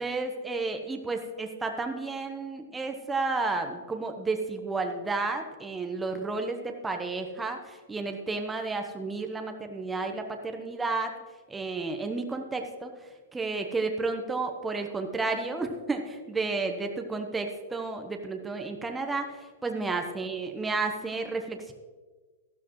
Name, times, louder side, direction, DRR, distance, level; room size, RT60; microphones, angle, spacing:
voice 1, 0.0-11.1 11.5-12.9 13.3-21.7, right 3 dB, 10° right, 4 dB, 0.9 m, -32 dB
13.0 x 12.5 x 3.1 m, 1.4 s
hypercardioid pair, 135°, 0 cm